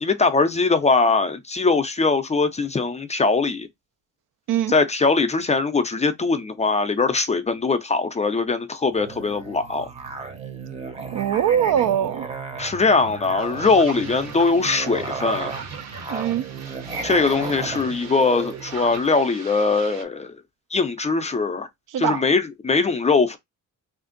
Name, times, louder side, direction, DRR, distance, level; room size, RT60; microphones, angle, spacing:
voice 1, 0.0-3.7 4.7-9.9 12.6-15.5 17.0-20.4 20.7-21.7 22.0-23.4, left 4 dB, 20° left, 0.4 m, -21 dB
Musical instrument, 8.9-19.1, right 4 dB, 20° right, 0.6 m, -34 dB
voice 2, 11.1-12.3 16.1-16.4 21.9-22.2, right 10 dB, 85° right, 0.5 m, -22 dB
sound 1, 13.4-20.0, right 5 dB, 55° right, 0.8 m, -40 dB
3.4 x 2.5 x 3.7 m
wide cardioid pair, 165°, 31 cm